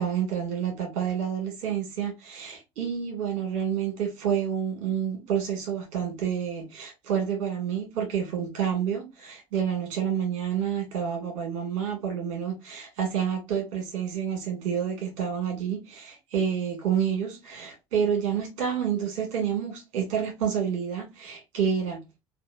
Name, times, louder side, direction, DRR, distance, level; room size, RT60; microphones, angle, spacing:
voice 1, 0.0-22.0, right 8 dB, 70° right, 1.5 m, -29 dB
3.6 x 2.4 x 2.4 m
hypercardioid pair, 65°, 16 cm